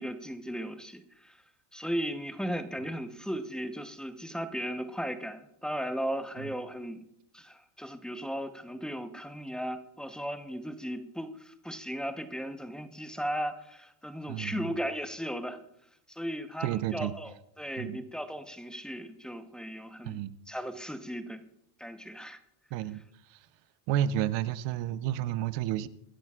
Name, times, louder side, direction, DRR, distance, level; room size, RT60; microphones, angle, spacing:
voice 1, 0.0-1.4 1.7-7.0 7.3-15.6 16.1-21.4 21.8-22.4, equal, ahead, 0.9 m, -36 dB
voice 2, 14.3-14.7 16.6-17.1 17.8-18.0 20.0-20.3 22.7-23.0 23.3-23.4 23.9-25.9, right 11 dB, 60° right, 0.9 m, -31 dB
24.5 x 10.5 x 2.5 m
supercardioid pair, 110°, 49 cm